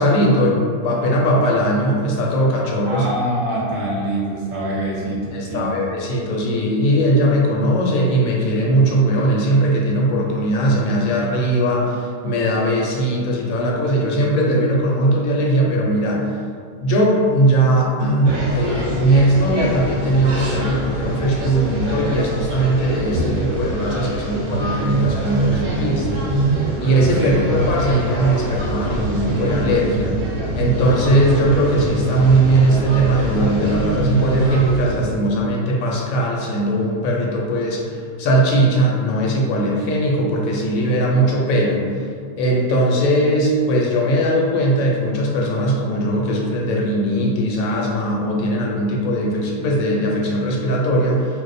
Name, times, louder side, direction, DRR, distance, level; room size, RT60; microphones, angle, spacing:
voice 1, 0.0-3.1 5.3-16.2 16.8-26.2 26.8-30.2 30.5-41.9 42.4-51.3, right 1 dB, 70° left, -2 dB, 0.9 m, -19 dB
voice 2, 2.8-5.8 27.2-27.4, right 1 dB, 45° right, -6 dB, 0.7 m, -25 dB
sound 1, 18.2-35.0, right 2 dB, 80° right, 1.2 m, -24 dB
2.6 x 2.1 x 3.9 m, 2.2 s
omnidirectional pair, 1.6 m